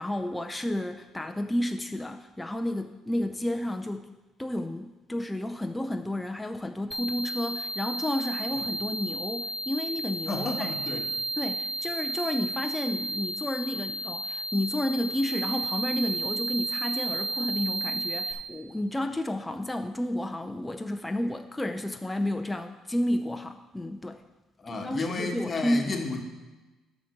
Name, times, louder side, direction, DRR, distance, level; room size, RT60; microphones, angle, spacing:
voice 1, 0.0-4.1 4.4-10.7 11.4-24.2 24.7-25.9, left 1 dB, 10° left, 6 dB, 0.5 m, -31 dB
sound 1, 6.9-18.3, right 2 dB, 15° right, 1.4 m, -33 dB
voice 2, 10.3-11.1 24.6-26.2, left 3 dB, 30° left, 1 dB, 1.6 m, -32 dB
8.8 x 5.9 x 6.6 m, 1.1 s
cardioid pair, 110°, 0 cm